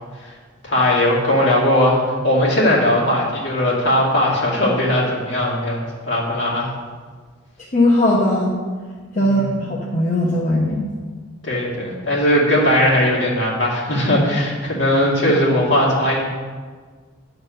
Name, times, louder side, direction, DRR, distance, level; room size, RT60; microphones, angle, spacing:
voice 1, 0.6-6.7 9.2-9.5 11.4-16.2, left 1 dB, 60° left, -4 dB, 2.3 m, -18 dB
voice 2, 7.7-8.5 9.1-10.9, left 1 dB, 35° left, -4 dB, 0.9 m, -18 dB
10.5 x 4.0 x 6.7 m, 1.5 s
head